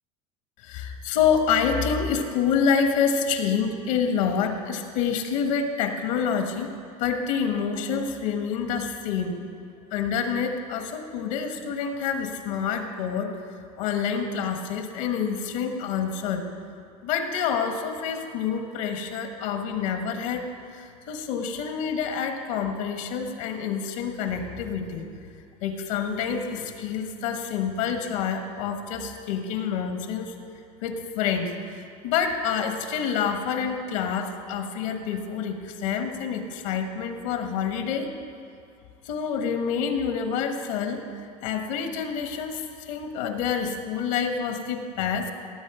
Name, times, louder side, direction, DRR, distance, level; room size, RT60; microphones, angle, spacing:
voice 1, 0.6-9.4 9.9-16.5 17.0-25.1 25.6-30.3 30.8-38.1 39.0-45.3, left 6 dB, 80° left, 6 dB, 1.4 m, -27 dB
17.5 x 7.4 x 4.9 m, 2.6 s
supercardioid pair, 140°, 17 cm